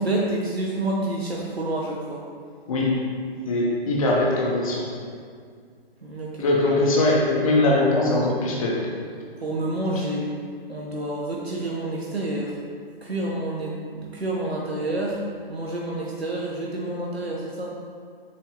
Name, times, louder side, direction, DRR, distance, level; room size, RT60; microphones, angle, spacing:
voice 1, 0.0-2.2 6.0-6.5 9.4-10.3 10.7-12.6 13.0-15.2 15.5-17.7, right 1 dB, 85° right, -3 dB, 1.2 m, -28 dB
voice 2, 2.7-3.0 3.5-4.9 6.4-8.9, left 2 dB, 35° left, -3 dB, 1.2 m, -21 dB
7.6 x 6.5 x 3.0 m, 2.1 s
figure-of-eight pair, 140°, 30 cm